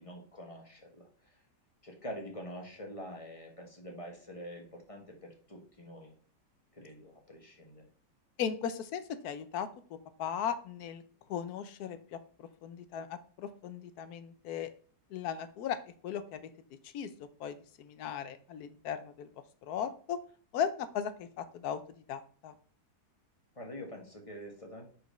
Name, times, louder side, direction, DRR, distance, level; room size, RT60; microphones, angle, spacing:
voice 1, 0.0-1.4 1.8-6.1 6.7-7.9 23.5-24.9, equal, 20° left, 1 dB, 1.2 m, -46 dB
voice 2, 8.4-9.7 10.2-11.0 11.3-14.7 15.1-15.8 16.0-16.5 16.9-19.3 19.6-20.2 20.5-21.8 22.1-22.5, left 8 dB, 70° left, 11 dB, 1.1 m, -37 dB
5.0 x 4.7 x 5.0 m, 0.43 s
omnidirectional pair, 1.9 m